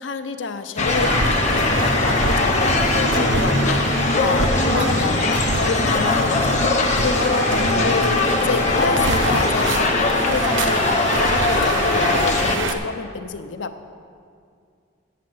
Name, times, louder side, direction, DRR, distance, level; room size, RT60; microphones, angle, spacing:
voice 1, 0.0-4.5 4.7-6.6 7.0-9.9 10.2-13.7, left 4 dB, 75° left, 9 dB, 0.6 m, -28 dB
sound 1, 0.8-12.6, left 3 dB, 40° left, 0.8 m, -21 dB
sound 2, 0.9-12.7, right 2 dB, 80° right, 0.8 m, -26 dB
Bowed string instrument, 1.0-6.3, equal, 5° right, 0.5 m, -35 dB
8.4 x 7.6 x 7.8 m, 2.3 s
head